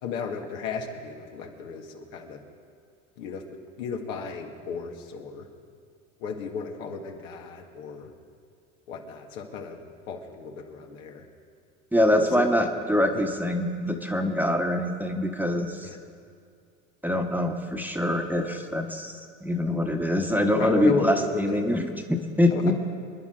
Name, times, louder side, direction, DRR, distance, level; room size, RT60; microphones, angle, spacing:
voice 1, 0.0-2.4 3.2-3.4 3.8-5.5 6.2-8.1 8.9-9.8 10.1-11.2 12.1-12.7 13.1-13.2 15.8-16.0 20.5-21.6 22.5-22.7, left 5 dB, 80° left, 2 dB, 2.0 m, -33 dB
voice 2, 11.9-15.9 17.0-19.1 19.4-22.7, left 1 dB, 5° right, 4 dB, 1.2 m, -24 dB
26.0 x 10.5 x 3.9 m, 2.2 s
supercardioid pair, 100°, 39 cm